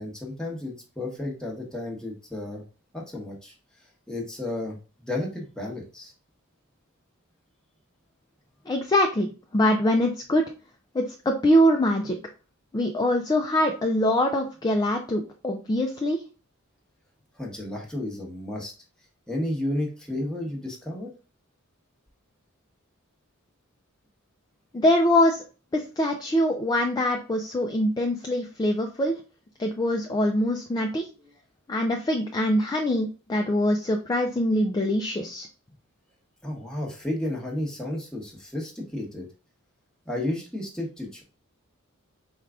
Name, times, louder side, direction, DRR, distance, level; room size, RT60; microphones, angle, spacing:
voice 1, 0.0-2.6 2.9-3.5 4.1-6.1 17.4-18.7 19.3-21.1 36.4-39.3 40.1-41.2, left 1 dB, 5° left, -2 dB, 1.0 m, -32 dB
voice 2, 8.7-10.4 10.9-12.2 12.7-16.2 24.7-25.4 25.7-29.2 29.6-31.0 31.7-35.5, left 1 dB, 20° left, 2 dB, 0.4 m, -23 dB
4.6 x 2.3 x 3.5 m, 0.34 s
head